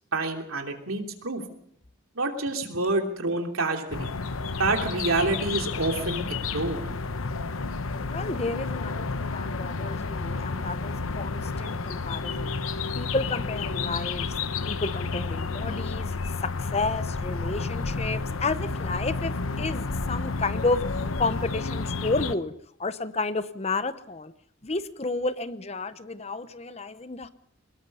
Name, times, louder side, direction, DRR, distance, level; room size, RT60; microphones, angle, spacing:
voice 1, 0.1-1.4 2.1-4.1 4.6-6.8, right 2 dB, 90° right, 4 dB, 3.1 m, -27 dB
sound 1, 3.9-22.3, left 4 dB, 85° left, 0.9 m, -31 dB
voice 2, 8.1-12.6 13.0-14.3 14.7-16.1 16.4-22.5 22.8-24.3 24.6-27.3, left 3 dB, 30° left, 13 dB, 0.7 m, -31 dB
23.0 x 20.5 x 5.5 m, 0.70 s
head